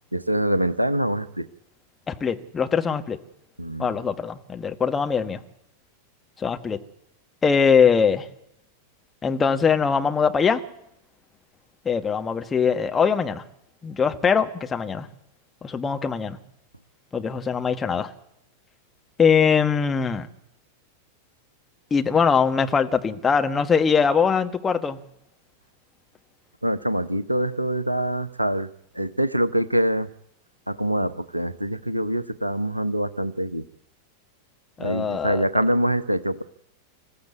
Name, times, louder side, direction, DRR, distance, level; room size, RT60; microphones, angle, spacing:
voice 1, 0.1-1.5 3.6-4.0 26.6-28.7 28.9-30.1 30.7-33.6 34.8-36.4, right 1 dB, 85° right, 0.9 m, -24 dB
voice 2, 2.1-3.2 3.8-5.4 6.4-6.8 7.4-8.3 9.2-10.6 11.8-13.4 13.8-15.1 15.6-16.4 17.1-18.1 19.2-20.3 21.9-25.0 34.8-35.4, left 6 dB, 15° left, 1.5 m, -22 dB
26.0 x 14.5 x 8.4 m
figure-of-eight pair, 90°, 0 cm